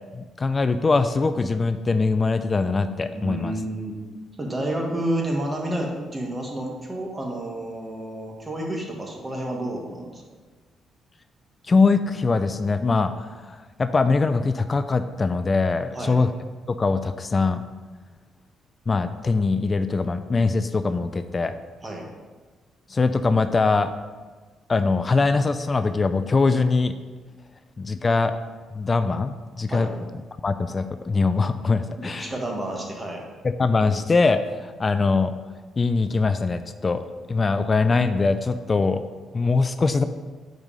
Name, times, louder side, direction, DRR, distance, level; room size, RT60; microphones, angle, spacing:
voice 1, 0.1-3.5 11.7-16.3 16.7-17.6 18.9-21.5 22.9-23.9 24.7-26.9 27.8-28.4 28.7-29.9 30.4-32.3 33.4-35.3 35.8-39.0 39.3-40.0, left 4 dB, 30° left, 10 dB, 0.3 m, -22 dB
voice 2, 3.1-3.9 4.4-10.2 15.9-16.2 21.8-22.0 27.3-27.4 29.7-29.9 32.0-33.2, right 1 dB, 25° right, 0 dB, 1.5 m, -30 dB
5.3 x 4.7 x 5.5 m, 1.4 s
cardioid pair, 90°, 0 cm